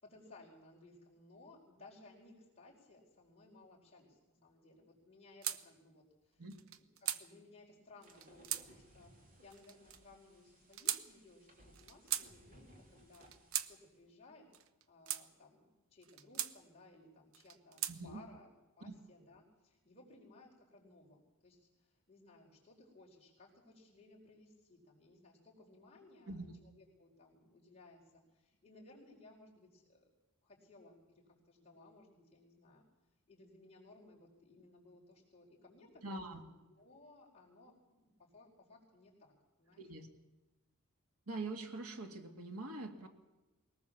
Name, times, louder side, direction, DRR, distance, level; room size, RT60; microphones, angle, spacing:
voice 1, 0.0-6.4 6.7-9.1 9.4-13.3 13.7-14.5 14.9-18.5 18.8-30.0 30.4-32.8 33.3-39.9, left 2 dB, 30° left, -4 dB, 4.5 m, -61 dB
sound 1, 5.4-5.6 6.5-7.2 8.0-8.7 9.5-10.0 10.7-11.0 11.7-12.3 13.1-13.7 14.5-15.2 16.0-16.5 17.3-18.0, right 11 dB, 65° right, 0.9 m, -39 dB
sound 2, 8.0-13.9, right 1 dB, 40° right, 3.3 m, -63 dB
voice 2, 17.9-18.2 18.9-19.0 26.3-26.5 36.0-36.4 39.8-40.1 41.3-43.1, right 2 dB, 85° right, 5 dB, 2.2 m, -44 dB
22.0 x 18.5 x 7.2 m, 1.1 s
head